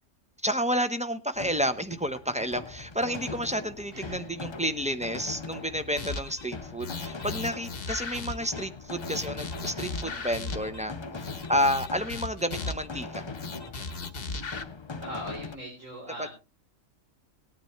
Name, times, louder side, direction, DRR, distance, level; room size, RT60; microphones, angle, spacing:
voice 1, 0.4-10.9 11.2-13.2 16.2-16.3, equal, 5° right, 10 dB, 0.7 m, -30 dB
sound 1, 1.4-15.6, left 3 dB, 30° left, 0.5 m, -41 dB
voice 2, 3.9-4.4 15.0-16.3, equal, 70° right, -2 dB, 4.3 m, -40 dB
sound 2, 6.0-6.5 6.8-8.7 9.0-10.8 11.2-13.0 13.3-14.6, left 4 dB, 50° left, 1.2 m, -37 dB
18.5 x 9.7 x 3.2 m, 0.29 s
omnidirectional pair, 1.4 m